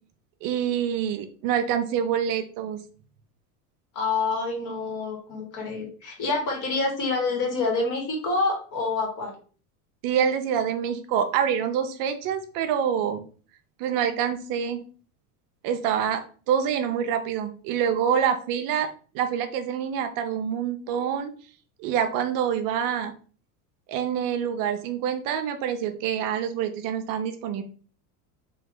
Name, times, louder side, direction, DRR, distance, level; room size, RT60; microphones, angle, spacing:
voice 1, 0.4-2.8 10.0-13.2 13.8-14.8 15.6-16.2 16.5-18.9 19.1-21.3 21.8-23.1 23.9-27.6, right 8 dB, 50° right, 7 dB, 0.6 m, -26 dB
voice 2, 3.9-9.4, left 3 dB, 45° left, 0 dB, 1.7 m, -27 dB
3.4 x 2.8 x 3.8 m, 0.41 s
supercardioid pair, 125°, 44 cm